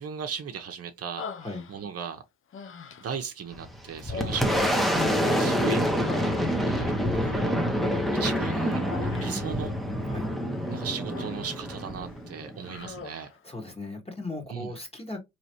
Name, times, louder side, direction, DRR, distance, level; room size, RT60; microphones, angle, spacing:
voice 1, 0.0-1.2 1.7-2.2 3.0-6.4 6.7-6.9 7.2-7.6 8.1-8.8 9.2-9.8 10.7-13.3 14.5-14.7, right 7 dB, 50° right, 0.8 m, -37 dB
Human voice, 1.2-2.1 2.5-3.3 4.0-5.5 5.8-6.9 8.9-9.6 10.6-11.6 12.0-12.2 12.6-13.4, left 5 dB, 45° left, 0.6 m, -42 dB
Boom, 3.5-12.9, equal, ahead, 0.8 m, -27 dB
voice 2, 13.4-15.2, left 2 dB, 20° left, 1.5 m, -37 dB
4.0 x 3.1 x 2.8 m
cardioid pair, 90°, 30 cm